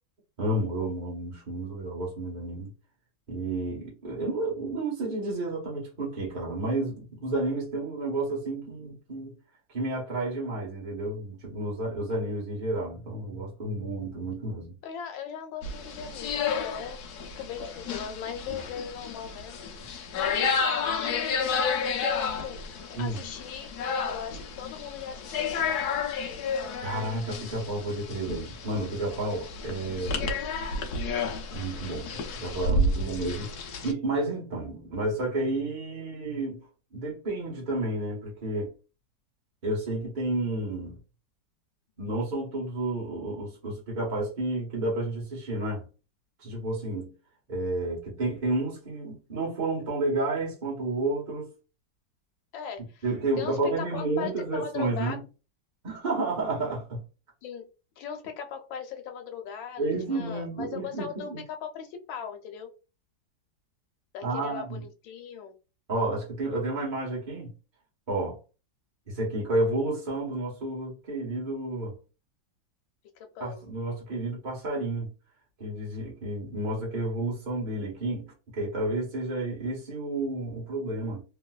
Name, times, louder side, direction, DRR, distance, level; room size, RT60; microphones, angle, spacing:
voice 1, 0.4-2.7 3.3-9.3 9.7-14.8 22.9-23.2 26.8-30.2 31.5-38.7 39.6-41.0 42.0-45.8 46.4-47.1 47.5-51.5 53.0-55.2 55.8-57.0 59.8-61.4 64.2-64.8 65.9-67.5 68.1-68.4 69.1-72.0 73.4-75.1 75.6-81.2, right 2 dB, 30° right, 1.1 m, -31 dB
voice 2, 14.8-19.7 21.0-22.7 23.0-23.7 24.1-26.0 52.5-53.0 53.4-55.2 57.4-57.6 58.0-62.7 64.1-65.6 73.2-73.6, left 7 dB, 90° left, 1.5 m, -38 dB
sound 1, 15.6-33.9, left 4 dB, 65° left, 1.0 m, -31 dB
3.2 x 3.0 x 2.3 m
omnidirectional pair, 2.1 m